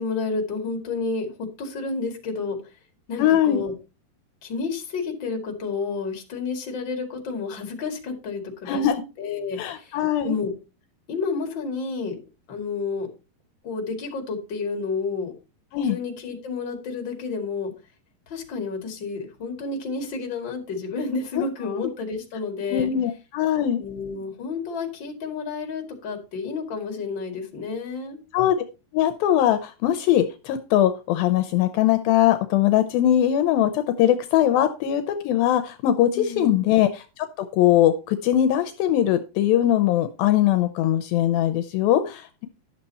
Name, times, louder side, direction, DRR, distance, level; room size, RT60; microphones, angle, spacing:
voice 1, 0.0-2.6 3.1-3.7 4.4-8.9 9.2-10.0 10.2-10.5 11.1-12.2 12.5-13.1 13.6-15.3 15.8-17.7 18.3-22.9 23.8-28.2 36.1-36.6, left 4 dB, 35° left, 3 dB, 2.5 m, -30 dB
voice 2, 3.2-3.6 8.7-9.0 9.6-10.4 15.7-16.0 21.4-21.5 22.7-23.8 28.3-28.6 28.9-36.9 37.2-42.5, left 11 dB, 80° left, 10 dB, 2.4 m, -21 dB
11.5 x 6.7 x 4.2 m, 0.30 s
omnidirectional pair, 4.4 m